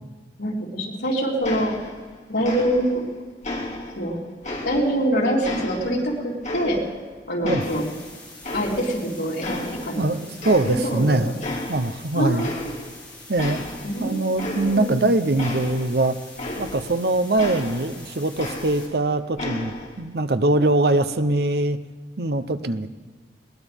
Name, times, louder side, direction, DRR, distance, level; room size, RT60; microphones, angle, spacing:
voice 1, 0.4-1.7 2.3-3.0 4.0-4.2 4.6-6.8 7.3-7.9 8.5-10.2 10.6-11.3 12.1-12.7 13.8-15.1, equal, 85° left, -4 dB, 3.8 m, -25 dB
sound 1, 1.4-2.1 2.4-3.1 3.4-5.1 5.4-7.1 7.4-9.1 9.4-10.1 10.4-11.1 11.4-12.0 12.4-13.0 13.4-17.0 17.4-19.0 19.4-20.0, left 2 dB, 40° left, 2.1 m, -33 dB
sound 2, 7.6-18.8, left 2 dB, 10° left, 4.4 m, -45 dB
voice 2, 10.0-11.3 11.7-12.5 13.3-13.6 14.0-16.2 16.6-21.8 22.2-22.9, right 2 dB, 65° right, 11 dB, 0.8 m, -22 dB
21.0 x 19.0 x 3.6 m, 1.3 s
head